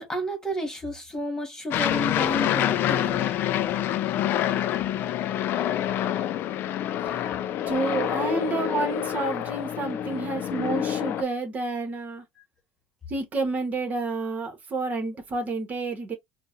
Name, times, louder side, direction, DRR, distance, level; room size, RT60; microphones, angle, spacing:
voice 1, 0.0-3.3 12.4-12.5, equal, 15° left, 1.7 m, -31 dB
Aircraft, 1.7-11.2, left 11 dB, 55° left, 0.4 m, -27 dB
voice 2, 7.7-12.2 13.1-16.2, right 3 dB, 40° right, 1.5 m, -29 dB
4.5 x 2.4 x 2.8 m
supercardioid pair, 95°, 4 cm